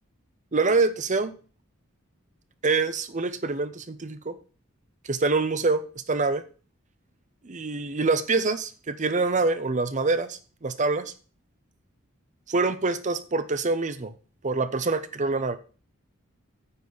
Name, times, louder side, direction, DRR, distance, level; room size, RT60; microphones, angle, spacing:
voice 1, 0.5-1.3 2.6-4.4 5.0-5.8 6.1-6.4 7.4-11.1 12.5-14.1 14.4-15.6, right 3 dB, 35° right, 11 dB, 0.7 m, -25 dB
9.6 x 4.2 x 7.0 m, 0.38 s
head